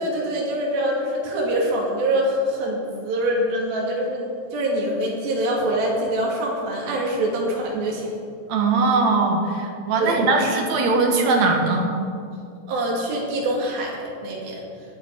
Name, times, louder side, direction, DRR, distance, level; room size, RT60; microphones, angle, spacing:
voice 1, 0.0-8.1 10.0-10.2 12.7-14.6, right 1 dB, 80° right, -2 dB, 4.0 m, -24 dB
voice 2, 8.5-11.9, right 3 dB, 60° right, 2 dB, 2.4 m, -20 dB
18.5 x 10.0 x 4.6 m, 2.4 s
omnidirectional pair, 4.2 m